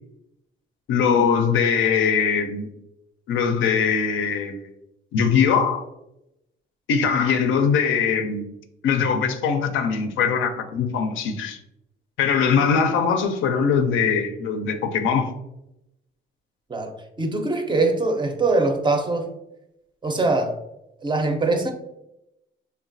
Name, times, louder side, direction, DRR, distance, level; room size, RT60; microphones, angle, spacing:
voice 1, 0.9-2.7 3.3-4.6 5.1-5.8 6.9-8.5 8.8-11.6 12.2-15.3, left 6 dB, 80° left, 7 dB, 0.4 m, -21 dB
voice 2, 16.7-19.3 20.0-20.6 21.0-21.7, right 3 dB, 25° right, 4 dB, 0.4 m, -22 dB
3.0 x 2.2 x 2.5 m, 0.87 s
cardioid pair, 90°, 20 cm